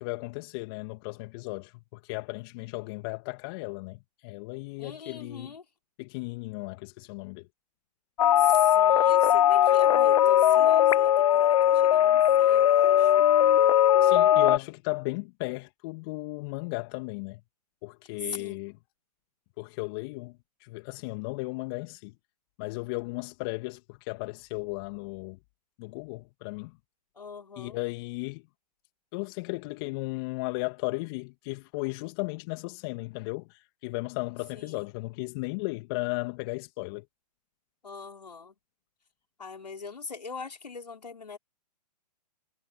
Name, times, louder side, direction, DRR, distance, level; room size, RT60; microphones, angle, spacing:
voice 1, 0.0-5.5 6.0-7.4 14.0-17.4 17.8-18.7 19.6-22.1 22.6-25.4 25.8-26.7 27.6-28.4 29.1-37.0, left 27 dB, 35° left, 2.2 m, -35 dB
voice 2, 4.8-5.6 8.4-13.3 18.2-18.6 27.1-27.8 34.5-34.9 37.8-38.6 39.4-41.4, left 5 dB, 80° left, 5.0 m, -41 dB
sound 1, 8.2-14.6, left 11 dB, 55° left, 0.5 m, -20 dB
figure-of-eight pair, 125°, 21 cm